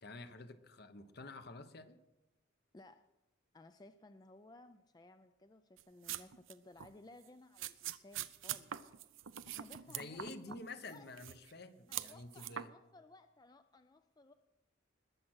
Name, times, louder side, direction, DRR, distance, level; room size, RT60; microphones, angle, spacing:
voice 1, 0.0-2.0 9.9-12.7, left 2 dB, 50° left, 10 dB, 1.0 m, -49 dB
voice 2, 2.7-3.0 3.5-8.7 9.4-10.2 10.5-10.6 10.9-11.1 11.9-14.3, left 2 dB, 20° left, 9 dB, 0.4 m, -59 dB
sound 1, 5.8-6.5 6.8-6.9 7.6-10.6 10.8-11.5 11.9-12.6, right 11 dB, 80° right, 0.6 m, -43 dB
20.5 x 7.5 x 6.3 m, 0.98 s
head